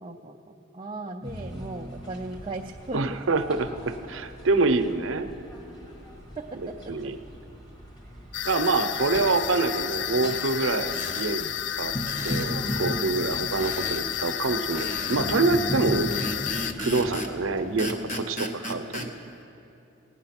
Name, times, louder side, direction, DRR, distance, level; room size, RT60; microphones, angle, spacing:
voice 1, 0.0-3.5 6.7-6.8 8.6-9.0, right 2 dB, 25° right, 0 dB, 0.4 m, -37 dB
sound 1, 1.2-18.0, equal, 20° left, 1.6 m, -38 dB
voice 2, 2.9-5.3 6.9-7.2 8.4-11.5 11.8-11.9 12.2-16.1 16.8-19.1, right 3 dB, 75° right, 9 dB, 0.7 m, -26 dB
sound 2, 8.3-16.7, left 11 dB, 55° left, 0.3 m, -31 dB
sound 3, 10.9-11.3 12.1-12.5 13.6-14.1 14.8-15.2 16.1-17.4 17.8-19.1, left 1 dB, 35° left, 0.9 m, -35 dB
17.0 x 9.5 x 5.8 m, 2.9 s
head